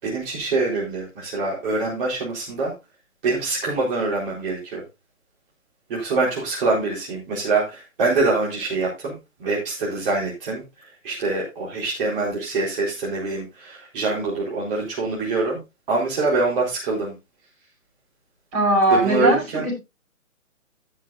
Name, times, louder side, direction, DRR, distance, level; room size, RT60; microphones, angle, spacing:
voice 1, 0.0-2.7 3.2-4.8 5.9-9.1 9.4-10.6 11.0-15.6 15.9-17.1 18.9-19.6, right 3 dB, 40° right, -5 dB, 4.4 m, -24 dB
voice 2, 18.5-19.7, right 2 dB, 25° right, -1 dB, 7.0 m, -19 dB
17.0 x 7.4 x 2.7 m, 0.25 s
figure-of-eight pair, 140°, 41 cm